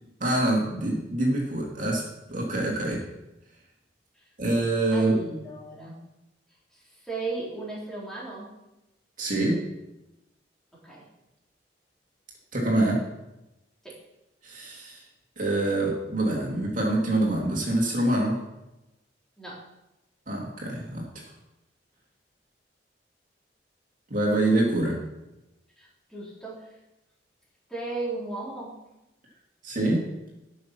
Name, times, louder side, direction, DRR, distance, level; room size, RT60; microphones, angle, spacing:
voice 1, 0.2-2.0 2.3-3.0 4.4-5.1 9.2-9.6 12.5-13.0 14.4-15.0 15.4-18.4 20.3-21.0 24.1-25.0 29.6-30.0, right 1 dB, 50° right, -2 dB, 2.6 m, -25 dB
voice 2, 4.9-6.0 6.7-8.5 10.8-11.1 13.8-14.0 19.4-19.6 25.8-26.6 27.7-28.8, right 3 dB, 5° left, -6 dB, 3.7 m, -35 dB
12.0 x 6.6 x 6.0 m, 0.95 s
head